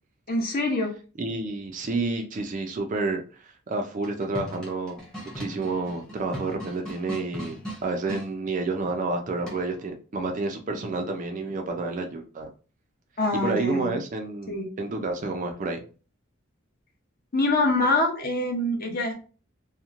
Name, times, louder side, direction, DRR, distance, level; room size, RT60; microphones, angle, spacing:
voice 1, 0.3-0.9 13.2-14.0 14.5-14.7 17.3-19.1, left 2 dB, 45° left, 1 dB, 0.7 m, -25 dB
voice 2, 1.2-5.0 5.4-12.5 13.4-15.8, right 3 dB, 40° right, 4 dB, 0.4 m, -30 dB
sound 1, 3.9-8.3 9.5-9.9, equal, 5° left, 0.8 m, -39 dB
2.9 x 2.1 x 2.4 m, 0.36 s
head